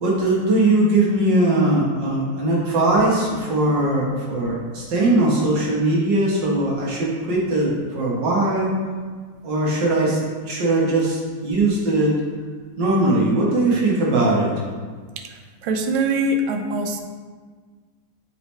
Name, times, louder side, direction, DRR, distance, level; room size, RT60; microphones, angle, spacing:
voice 1, 0.0-8.7 9.4-10.2 10.5-12.2 12.8-14.5, right 2 dB, 65° right, -4 dB, 1.9 m, -20 dB
voice 2, 15.6-17.0, right 2 dB, 85° right, 5 dB, 1.4 m, -22 dB
6.7 x 4.7 x 3.2 m, 1.5 s
omnidirectional pair, 2.1 m